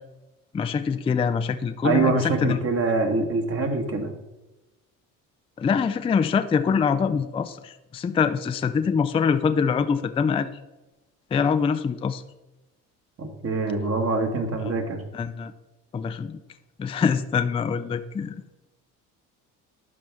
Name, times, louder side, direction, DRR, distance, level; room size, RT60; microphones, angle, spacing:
voice 1, 0.5-2.6 5.6-10.5 11.3-12.2 14.6-14.7 15.1-15.5 15.9-16.4 16.8-18.3, left 6 dB, 15° left, 10 dB, 0.3 m, -24 dB
voice 2, 1.8-4.1 13.2-15.0, right 3 dB, 35° right, 4 dB, 1.5 m, -24 dB
11.5 x 4.3 x 3.5 m, 1.0 s
supercardioid pair, 75°, 39 cm